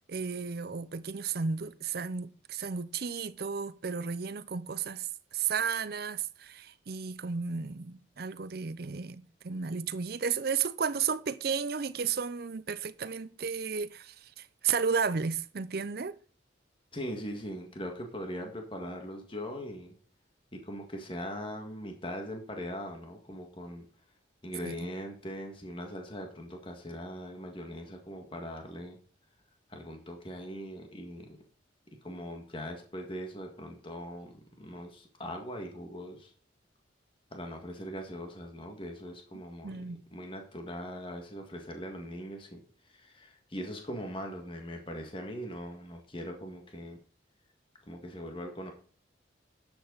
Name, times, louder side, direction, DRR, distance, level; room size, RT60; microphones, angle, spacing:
voice 1, 0.1-16.2 24.6-24.7 39.6-40.0, right 6 dB, 55° right, 0.6 m, -33 dB
voice 2, 16.9-19.9 20.5-23.8 24.4-29.0 29.7-31.4 32.0-36.3 37.3-47.0 47.9-48.7, equal, 25° left, 1.8 m, -41 dB
12.0 x 8.0 x 4.0 m
head